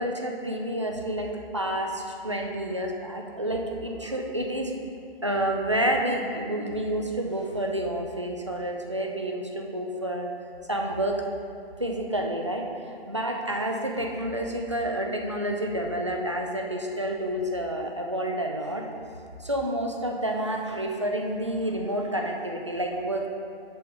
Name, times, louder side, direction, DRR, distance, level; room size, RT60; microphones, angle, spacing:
voice 1, 0.0-4.8 5.2-10.3 10.7-11.3 11.8-12.7 13.1-18.9 19.4-23.3, right 1 dB, 30° right, 1 dB, 0.4 m, -29 dB
6.2 x 5.9 x 4.8 m, 2.5 s
hypercardioid pair, 180°, 31 cm